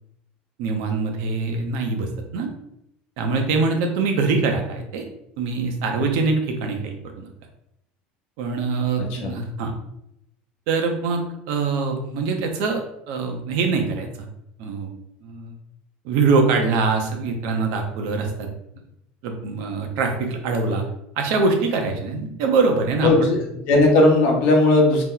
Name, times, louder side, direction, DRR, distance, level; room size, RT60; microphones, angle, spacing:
voice 1, 0.6-2.5 3.2-5.0 5.4-7.3 8.4-9.7 10.7-12.8 13.1-14.3 14.6-14.9 15.2-15.5 16.0-18.5 19.2-20.8 21.2-23.3, right 4 dB, 65° right, 3 dB, 0.6 m, -23 dB
voice 2, 23.0-23.4 23.7-25.0, left 2 dB, 55° left, 1 dB, 0.8 m, -16 dB
2.9 x 2.1 x 3.7 m, 0.79 s
cardioid pair, 155°, 4 cm